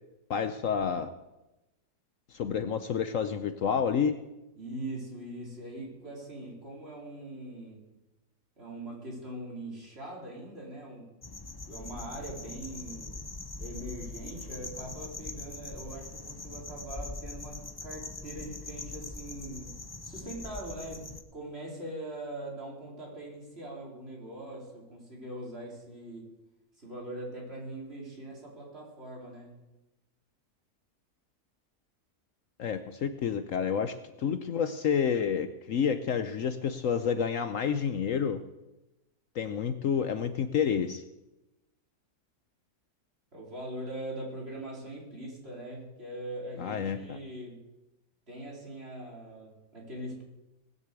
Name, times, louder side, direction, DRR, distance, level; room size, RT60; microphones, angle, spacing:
voice 1, 0.3-1.1 2.3-4.2 32.6-38.4 39.3-41.0 46.6-47.2, left 7 dB, 65° left, 10 dB, 1.0 m, -29 dB
voice 2, 4.6-7.8 8.6-11.1 11.7-13.1 13.6-19.7 20.0-26.3 26.8-29.6 43.3-47.6 48.3-50.2, right 1 dB, 40° right, -3 dB, 4.5 m, -41 dB
sound 1, 11.2-21.2, left 3 dB, 20° left, 0.6 m, -42 dB
19.5 x 6.8 x 8.3 m, 0.99 s
omnidirectional pair, 1.7 m